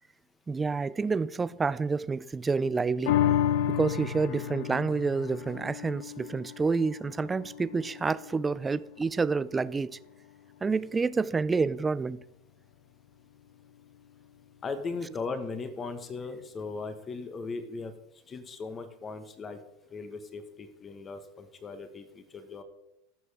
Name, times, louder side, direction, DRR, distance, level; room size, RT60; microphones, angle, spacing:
voice 1, 0.5-3.2 3.7-10.0 10.6-12.2, right 4 dB, 15° right, 0.3 m, -28 dB
sound 1, 3.1-9.7 10.2-10.3, left 10 dB, 70° left, 0.6 m, -32 dB
voice 2, 14.6-17.9 18.3-19.6 19.9-22.6, left 4 dB, 25° left, 1.2 m, -38 dB
15.0 x 6.3 x 3.5 m
supercardioid pair, 125°, 0 cm